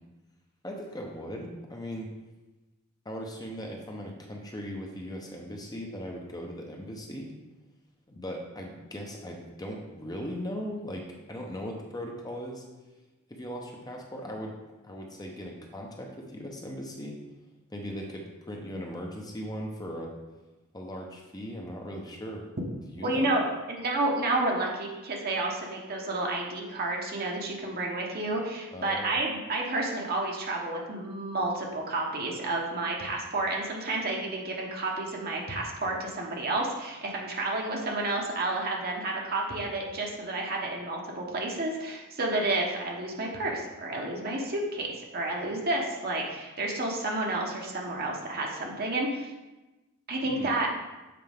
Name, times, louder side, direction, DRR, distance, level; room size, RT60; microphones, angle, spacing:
voice 1, 0.6-2.1 3.0-7.3 8.1-11.0 11.3-12.6 13.3-14.5 14.8-17.2 17.7-20.1 20.7-22.4 22.9-23.3 28.7-29.2 50.3-50.5, equal, 15° left, 1 dB, 0.8 m, -38 dB
voice 2, 23.0-49.3 50.1-50.7, right 2 dB, 45° right, -1 dB, 1.0 m, -30 dB
7.7 x 4.4 x 3.5 m, 1.1 s
head